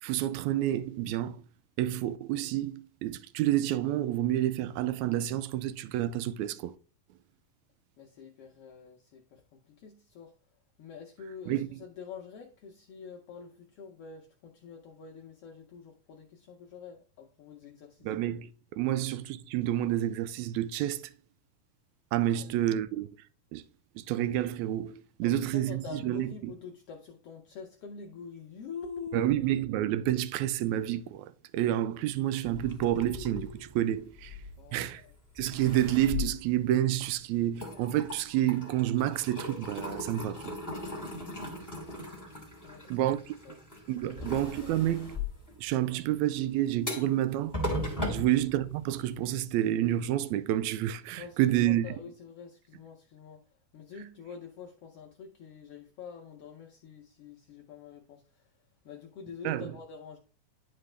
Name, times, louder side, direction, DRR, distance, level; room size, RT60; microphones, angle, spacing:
voice 1, 0.0-1.4 1.8-6.8 11.5-11.7 18.0-21.1 22.1-23.1 23.5-23.7 23.9-26.5 29.1-34.4 34.7-35.0 35.4-40.5 42.9-43.3 43.9-45.2 45.6-47.6 48.1-51.8 59.4-59.7, right 13 dB, 85° right, 1.6 m, -29 dB
voice 2, 8.0-10.4 10.8-18.1 22.4-22.6 25.2-29.3 34.6-35.1 42.6-43.1 43.4-43.6 44.0-44.7 48.0-48.3 51.2-53.4 53.7-58.5 58.8-60.2, left 6 dB, 80° left, 1.3 m, -46 dB
sound 1, 32.5-35.0 35.4-37.2 37.5-49.1, left 2 dB, 5° left, 2.0 m, -38 dB
11.0 x 4.1 x 3.3 m
omnidirectional pair, 3.8 m